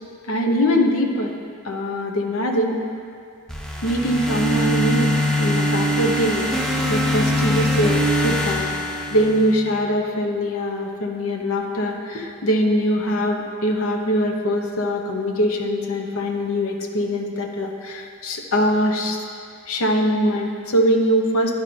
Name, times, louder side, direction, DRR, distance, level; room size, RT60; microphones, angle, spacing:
voice 1, 0.2-1.3 1.6-2.8 3.8-6.5 6.9-8.7 9.1-19.2 19.7-21.5, equal, 65° left, 2 dB, 0.7 m, -22 dB
sound 1, 3.5-9.7, equal, ahead, 0.6 m, -22 dB
10.0 x 4.9 x 5.0 m, 2.3 s
head